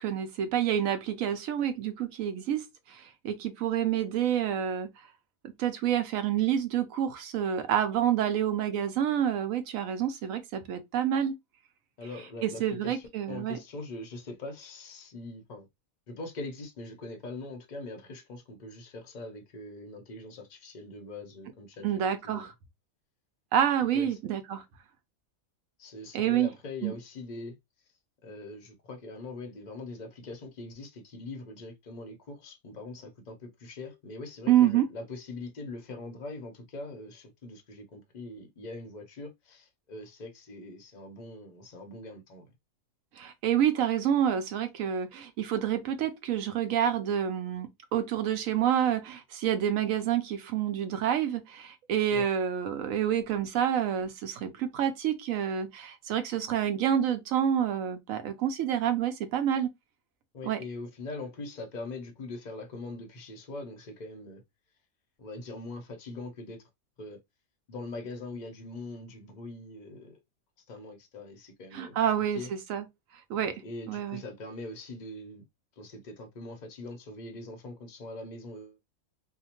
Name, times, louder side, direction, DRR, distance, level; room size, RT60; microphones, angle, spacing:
voice 1, 0.0-4.9 5.4-11.3 12.4-13.6 21.8-22.5 23.5-24.6 26.1-26.5 26.8-26.9 34.5-34.9 43.2-59.7 60.4-60.6 71.7-72.9 73.3-73.5 73.9-74.2, right 9 dB, 70° right, 1.0 m, -28 dB
voice 2, 12.0-15.7 16.1-22.5 23.9-24.1 25.8-27.6 28.2-42.5 52.1-52.3 60.3-64.4 65.2-66.6 67.0-67.2 67.7-70.2 70.7-72.0 72.3-72.5 73.6-75.4 75.8-78.8, left 2 dB, 50° left, 0.5 m, -42 dB
2.8 x 2.1 x 2.8 m
omnidirectional pair, 1.5 m